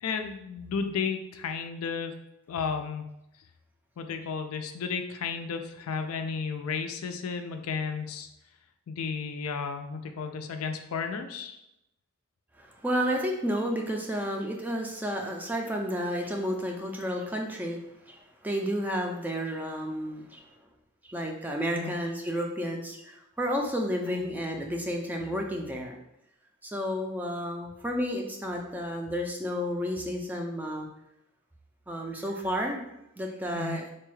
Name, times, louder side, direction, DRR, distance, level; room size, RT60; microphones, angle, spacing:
voice 1, 0.0-2.1 2.5-3.1 4.0-8.3 8.9-11.6 21.7-22.0 24.1-24.2 33.5-33.8, left 5 dB, 80° left, 6 dB, 0.4 m, -33 dB
voice 2, 12.6-17.8 18.1-20.5 21.0-25.9 26.6-30.9 31.9-32.8 33.2-33.8, equal, 10° right, 1 dB, 0.3 m, -31 dB
4.0 x 2.2 x 3.1 m, 0.84 s
head